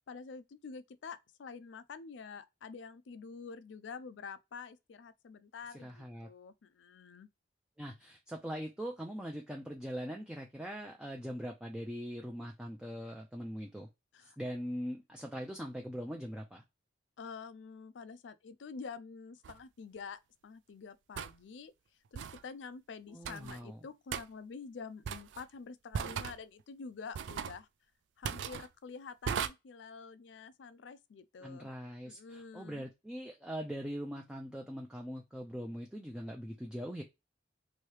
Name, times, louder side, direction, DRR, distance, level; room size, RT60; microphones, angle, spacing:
voice 1, 0.0-7.3 14.1-14.4 17.2-21.7 22.1-27.7 28.2-31.7 32.0-32.8, left 5 dB, 90° left, 0.4 m, -48 dB
voice 2, 5.7-6.3 7.8-13.9 14.2-16.6 23.1-23.8 31.4-37.0, equal, 5° right, 0.4 m, -41 dB
sound 1, 19.4-19.6 21.2-21.4 22.1-22.4 23.2-23.6 24.1-24.2 25.1-25.5 25.9-26.4 27.1-27.6 28.2-28.7 29.3-29.5, right 7 dB, 85° right, 0.3 m, -37 dB
3.0 x 2.7 x 3.1 m
head